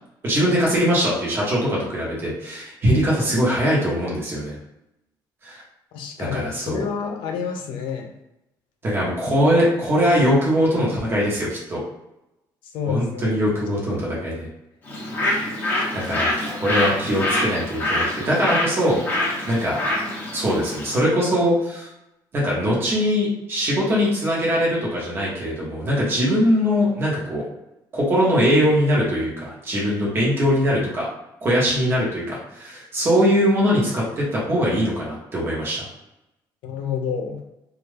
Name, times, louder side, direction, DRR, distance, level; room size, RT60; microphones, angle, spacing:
voice 1, 0.2-4.6 5.4-5.6 6.2-6.8 8.8-11.8 12.9-14.5 15.2-15.4 15.9-19.0 19.5-19.8 20.3-21.9 22.3-27.4 27.9-31.1 31.4-35.9, equal, 30° right, -5 dB, 0.9 m, -21 dB
voice 2, 5.9-8.1 12.7-13.4 13.9-14.1 36.6-37.4, left 6 dB, 85° left, 3 dB, 0.5 m, -29 dB
Bird, 14.8-21.0, left 1 dB, 20° left, 0.7 m, -25 dB
2.4 x 2.2 x 3.2 m, 0.90 s
cardioid pair, 175°, 8 cm